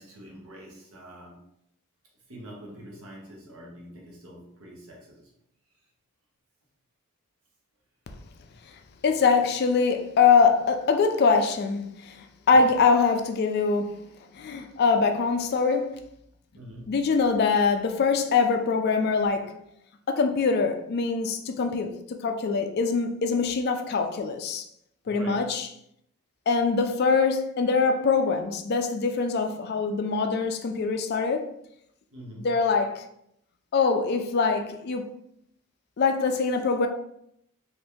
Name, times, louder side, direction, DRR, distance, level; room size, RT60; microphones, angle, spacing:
voice 1, 0.0-1.5 2.3-5.3 12.5-12.7 16.5-17.1 25.0-25.5 32.1-32.6, equal, 70° right, 0.9 m, -45 dB
voice 2, 9.0-14.0 14.3-16.1 16.9-19.5 20.1-24.7 25.1-25.7 26.5-31.5 32.4-33.1 33.7-35.1 36.0-36.9, left 5 dB, 45° left, 0.3 m, -23 dB
2.8 x 2.5 x 3.4 m
head